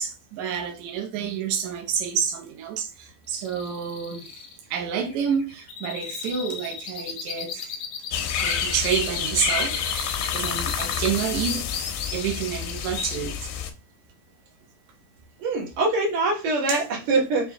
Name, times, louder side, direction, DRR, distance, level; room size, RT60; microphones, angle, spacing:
voice 1, 0.0-4.3 4.7-7.8 8.4-11.6 12.1-13.5 16.7-16.8, right 7 dB, 85° right, 1.6 m, -29 dB
sound 1, 3.3-13.1, left 6 dB, 60° left, 1.9 m, -36 dB
sound 2, 8.1-13.7, left 7 dB, 85° left, 2.4 m, -29 dB
voice 2, 15.4-17.5, right 2 dB, 60° right, 2.3 m, -24 dB
6.5 x 2.7 x 2.2 m
omnidirectional pair, 4.3 m